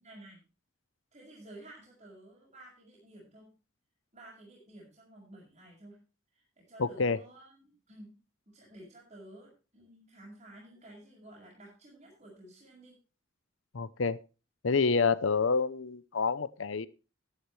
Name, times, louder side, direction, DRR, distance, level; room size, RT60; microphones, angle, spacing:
voice 1, 0.0-0.4 1.1-3.5 4.1-6.0 6.3-8.2 8.5-12.9, right 1 dB, 35° right, -4 dB, 6.2 m, -53 dB
voice 2, 6.8-7.2 13.7-14.2 14.6-16.9, left 4 dB, 75° left, 17 dB, 0.7 m, -28 dB
14.0 x 11.0 x 3.2 m, 0.33 s
head